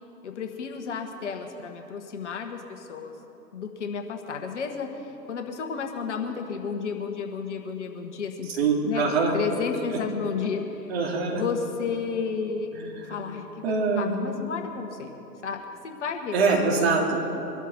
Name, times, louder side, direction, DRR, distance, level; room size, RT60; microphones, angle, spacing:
voice 1, 0.2-3.1 3.5-8.5 8.8-10.9 11.4-12.7 13.0-13.5 13.9-15.1 15.4-16.3 17.0-17.2, left 6 dB, 45° left, 4 dB, 1.5 m, -32 dB
voice 2, 8.6-9.3 10.9-11.4 12.8-13.2 13.6-14.2 16.3-17.2, right 4 dB, 40° right, 0 dB, 2.9 m, -24 dB
23.5 x 12.5 x 4.3 m, 3.0 s
figure-of-eight pair, 135°, 50 cm